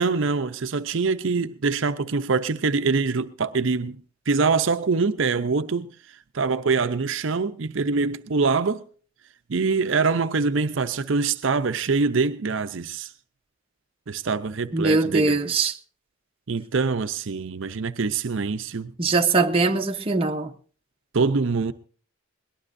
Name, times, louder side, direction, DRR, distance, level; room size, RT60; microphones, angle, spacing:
voice 1, 0.0-4.0 4.3-5.9 6.3-8.8 9.5-13.1 14.1-15.5 16.5-18.9 21.1-21.7, right 4 dB, 65° right, 0.6 m, -24 dB
voice 2, 14.7-15.7 19.0-20.5, right 3 dB, 25° right, 0.9 m, -21 dB
22.0 x 18.5 x 2.6 m
head